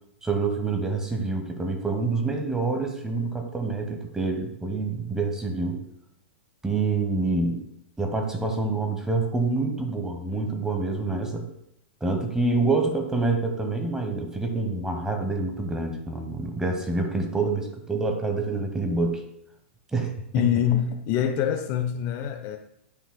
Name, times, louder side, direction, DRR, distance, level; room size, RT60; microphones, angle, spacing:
voice 1, 0.2-5.8 6.6-7.6 8.0-11.5 12.0-19.2 19.9-20.1, right 3 dB, 10° right, 4 dB, 1.1 m, -27 dB
voice 2, 20.3-22.6, left 10 dB, 40° left, 6 dB, 0.6 m, -25 dB
9.9 x 5.6 x 2.2 m, 0.76 s
hypercardioid pair, 110°, 7 cm